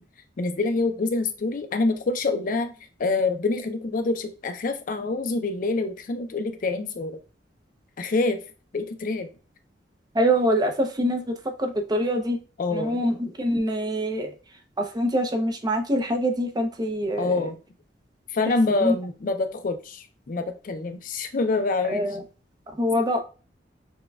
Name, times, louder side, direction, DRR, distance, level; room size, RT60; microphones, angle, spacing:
voice 1, 0.4-2.7 3.0-7.2 8.0-8.4 8.7-9.3 12.6-13.0 17.2-17.6 18.3-22.0, left 3 dB, 50° left, 8 dB, 0.4 m, -26 dB
voice 2, 10.1-12.4 12.7-14.3 14.9-17.3 18.8-18.9 21.9-22.1 22.8-23.2, equal, 25° right, 5 dB, 0.5 m, -24 dB
6.1 x 2.2 x 2.2 m, 0.34 s
head